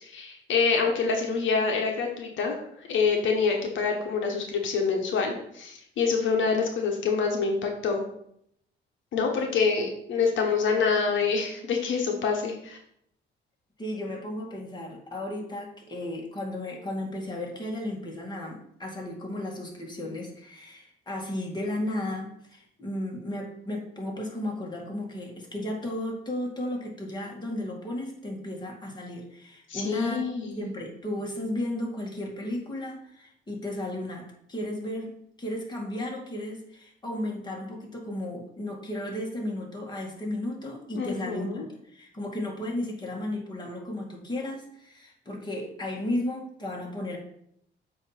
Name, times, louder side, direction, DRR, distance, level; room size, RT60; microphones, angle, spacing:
voice 1, 0.0-2.6 2.9-8.0 9.1-12.8 29.7-30.6 40.9-41.6, left 5 dB, 75° left, 2 dB, 1.2 m, -26 dB
voice 2, 13.8-47.2, left 1 dB, 20° left, -1 dB, 2.1 m, -34 dB
7.8 x 3.0 x 5.8 m, 0.72 s
cardioid pair, 90°, 20 cm